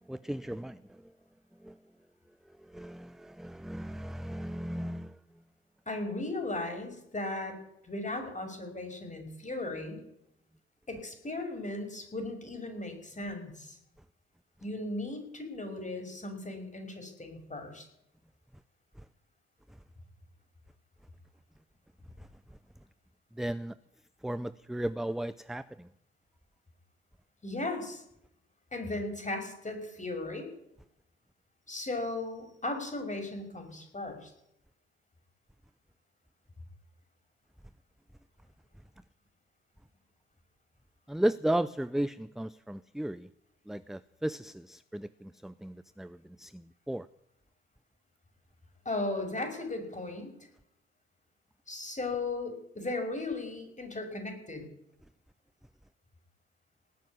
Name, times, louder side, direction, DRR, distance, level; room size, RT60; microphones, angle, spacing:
voice 1, 0.1-1.1 1.6-1.8 2.6-5.2 19.0-19.1 22.2-22.3 23.4-23.7 24.2-25.9 41.1-43.3 43.7-47.1, right 1 dB, ahead, 0.6 m, -35 dB
voice 2, 5.9-7.6 7.8-10.0 10.9-13.8 14.6-17.8 27.4-28.0 28.7-30.5 31.7-34.3 48.8-50.3 51.7-54.7, left 2 dB, 25° left, 6.1 m, -36 dB
19.0 x 7.5 x 9.8 m
hypercardioid pair, 45°, 31 cm